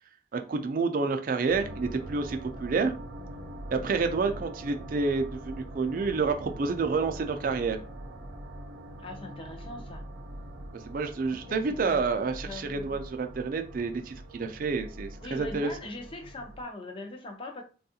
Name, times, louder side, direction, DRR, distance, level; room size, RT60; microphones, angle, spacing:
voice 1, 0.3-2.9 3.7-7.8 10.9-15.7, right 4 dB, 50° right, 6 dB, 0.3 m, -29 dB
sound 1, 1.5-16.6, right 1 dB, 85° right, 0.7 m, -43 dB
voice 2, 9.0-10.0 11.5-12.0 12.4-13.0 15.2-17.6, left 2 dB, 30° left, 3 dB, 0.5 m, -41 dB
3.4 x 2.3 x 2.7 m, 0.37 s
head